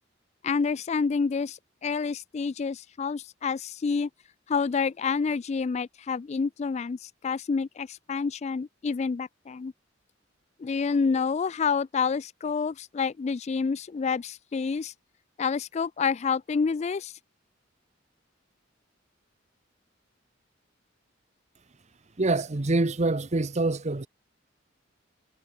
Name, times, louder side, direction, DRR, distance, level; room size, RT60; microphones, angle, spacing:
voice 1, 0.4-4.1 4.5-9.7 10.6-14.9 15.4-17.1, left 5 dB, 35° left, 0.3 m, -28 dB
voice 2, 22.2-24.1, right 2 dB, 35° right, 0.9 m, -25 dB
head